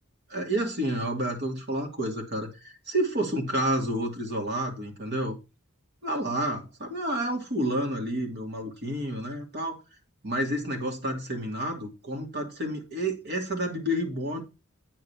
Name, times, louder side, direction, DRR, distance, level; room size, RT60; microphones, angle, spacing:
voice 1, 0.3-5.4 6.0-9.8 10.2-14.4, right 1 dB, 50° right, 2.5 m, -30 dB
8.6 x 4.1 x 7.0 m
head